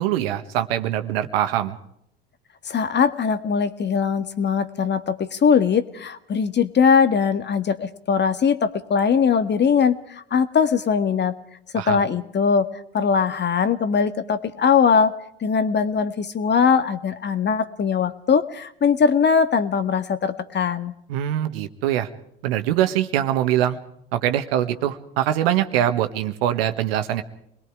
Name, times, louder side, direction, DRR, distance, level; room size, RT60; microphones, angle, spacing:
voice 1, 0.0-1.8 11.7-12.0 21.1-22.1 22.4-23.8 24.1-27.2, right 11 dB, 70° right, 9 dB, 1.6 m, -23 dB
voice 2, 2.6-11.3 11.7-12.7 12.9-15.1 15.4-20.9, left 6 dB, 35° left, 11 dB, 1.7 m, -20 dB
27.5 x 21.5 x 4.8 m, 0.74 s
hypercardioid pair, 65°, 31 cm